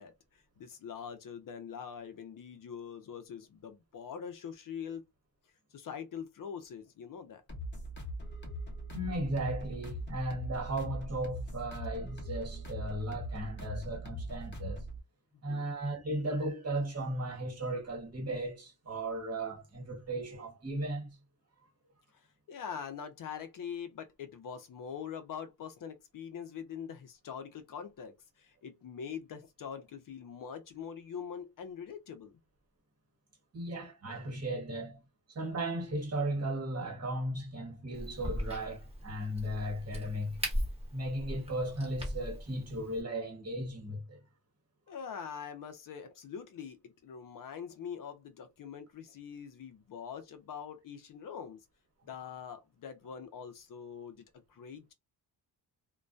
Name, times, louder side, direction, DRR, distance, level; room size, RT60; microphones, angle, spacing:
voice 1, 0.0-5.0 5.7-7.4 15.5-15.7 22.1-32.4 44.9-51.6 52.0-54.2 54.5-54.9, left 7 dB, 50° left, 0.6 m, -44 dB
sound 1, 7.5-15.0, equal, 25° left, 0.9 m, -41 dB
voice 2, 8.9-14.8 15.4-21.2 33.5-35.0 35.3-40.4 40.9-44.2, right 1 dB, 35° right, 1.3 m, -36 dB
Crack, 37.9-43.0, equal, 15° right, 1.0 m, -39 dB
2.2 x 2.1 x 2.5 m
cardioid pair, 115°, 42 cm